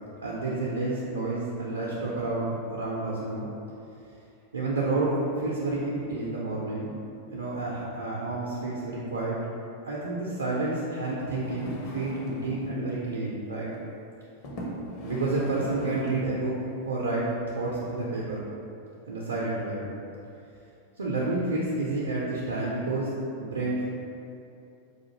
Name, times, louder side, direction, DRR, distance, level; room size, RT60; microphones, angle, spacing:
voice 1, 0.2-3.5 4.5-7.0 7.3-9.4 9.8-13.7 15.0-16.5 16.8-18.5 19.1-19.9 21.0-23.1 23.4-23.8, right 2 dB, 70° right, -6 dB, 0.4 m, -30 dB
sound 1, 11.1-12.7 13.6-13.8 14.4-16.4 17.1-17.2, equal, 45° left, 0.6 m, -39 dB
4.1 x 2.5 x 2.8 m, 2.7 s
figure-of-eight pair, 90°, 0 cm